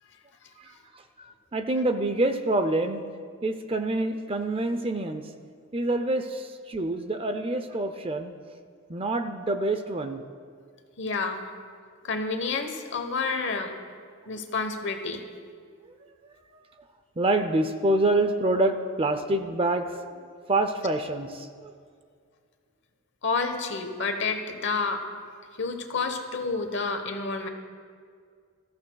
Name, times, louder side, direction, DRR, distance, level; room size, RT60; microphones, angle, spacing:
voice 1, 1.5-3.0 3.4-5.2 5.7-6.4 6.7-8.3 8.9-10.2 17.2-20.0 20.5-21.3 21.6-21.7, right 2 dB, 25° right, 8 dB, 0.5 m, -26 dB
voice 2, 11.0-11.4 12.0-13.7 14.3-15.3 23.2-25.0 25.6-27.5, left 4 dB, 55° left, 6 dB, 1.1 m, -29 dB
20.5 x 14.0 x 2.3 m, 2.1 s
head